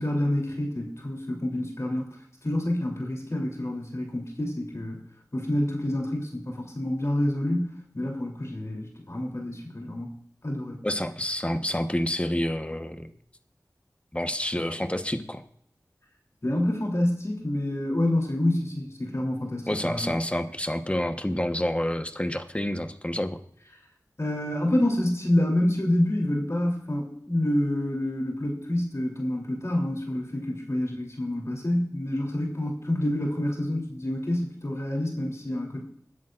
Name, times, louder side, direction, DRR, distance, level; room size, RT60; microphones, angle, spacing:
voice 1, 0.0-2.1 2.4-5.0 5.3-10.2 10.4-10.8 16.4-20.1 24.2-35.8, left 1 dB, 50° left, -1 dB, 3.2 m, -27 dB
voice 2, 10.8-13.1 14.1-15.4 19.7-23.4, left 1 dB, 20° left, 8 dB, 1.1 m, -28 dB
20.5 x 10.5 x 2.5 m, 0.67 s
wide cardioid pair, 45°, 6 cm